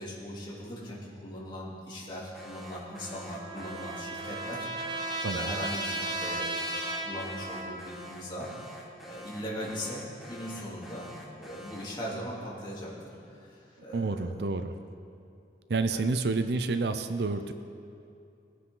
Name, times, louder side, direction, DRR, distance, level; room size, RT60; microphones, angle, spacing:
voice 1, 0.0-8.5 9.0-11.1 11.4-14.5 15.9-16.0, equal, 25° left, -6 dB, 3.1 m, -40 dB
Alarm, 2.3-12.0, left 1 dB, ahead, 1.2 m, -48 dB
Trumpet, 2.9-8.1, right 1 dB, 25° right, 0.9 m, -35 dB
voice 2, 13.9-14.7 15.7-17.5, right 3 dB, 65° right, 9 dB, 0.5 m, -29 dB
20.5 x 9.7 x 3.9 m, 2.6 s
head